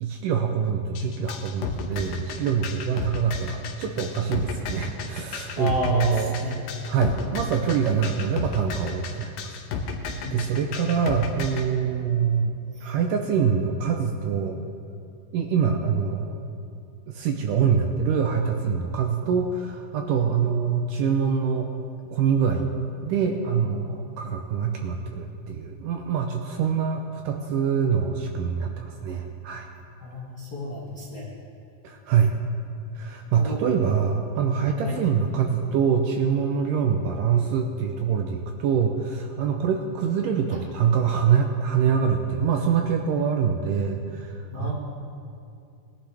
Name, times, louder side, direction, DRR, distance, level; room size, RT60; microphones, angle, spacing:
voice 1, 0.0-6.3 6.9-9.5 10.3-12.5 12.8-14.6 15.3-16.4 17.1-21.7 22.1-22.7 23.0-29.7 31.8-32.3 33.0-44.7, right 6 dB, 80° right, 4 dB, 1.9 m, -25 dB
sound 1, 1.0-11.7, left 5 dB, 70° left, 2.5 m, -33 dB
voice 2, 5.6-6.7 10.2-10.6 23.5-23.7 30.0-31.2 33.3-33.6 34.8-35.0 44.5-44.7, left 1 dB, 90° left, -4 dB, 0.8 m, -31 dB
20.5 x 11.5 x 3.4 m, 2.6 s
omnidirectional pair, 4.4 m